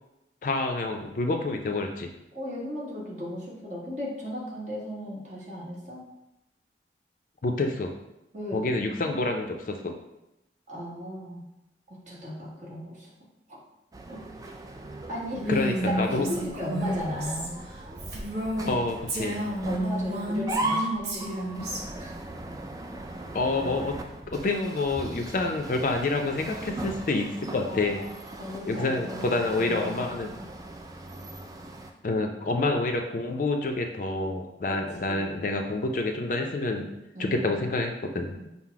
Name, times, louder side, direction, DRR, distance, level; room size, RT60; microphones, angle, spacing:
voice 1, 0.4-2.1 7.4-7.9 8.5-9.9 15.5-16.3 18.7-19.4 23.3-24.0 24.3-28.0 28.7-30.3 32.0-36.9 37.2-38.3, left 2 dB, 50° left, 3 dB, 0.4 m, -28 dB
voice 2, 2.3-6.0 8.3-8.7 10.7-11.4 11.9-13.1 13.5-13.6 14.1-14.5 15.1-15.7 16.0-17.6 19.2-19.4 19.6-21.7 22.0-22.1 27.6-28.1 28.4-30.4 35.1-35.4 37.1-37.5 38.3-38.4, equal, 40° right, -5 dB, 1.3 m, -36 dB
sound 1, 13.9-31.9, right 2 dB, 20° right, 0.3 m, -38 dB
Female speech woman speaking, 15.3-18.8 19.1-21.8, right 1 dB, 70° right, 1.1 m, -31 dB
5.6 x 2.0 x 4.6 m, 0.91 s
head